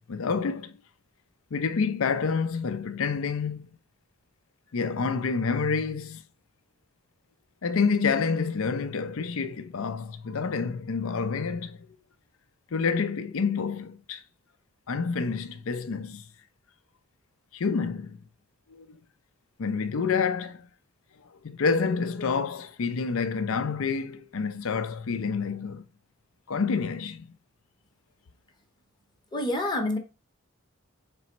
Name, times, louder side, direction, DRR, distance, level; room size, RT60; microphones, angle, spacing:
voice 1, 0.1-0.7 1.5-3.7 4.7-6.2 7.6-11.8 12.7-14.2 14.9-16.2 17.5-18.2 18.7-19.0 19.6-20.6 21.4-25.8 26.5-27.3, left 5 dB, 70° left, 0.5 m, -28 dB
voice 2, 29.3-30.0, left 1 dB, 20° left, 0.8 m, -27 dB
4.2 x 3.4 x 2.8 m
head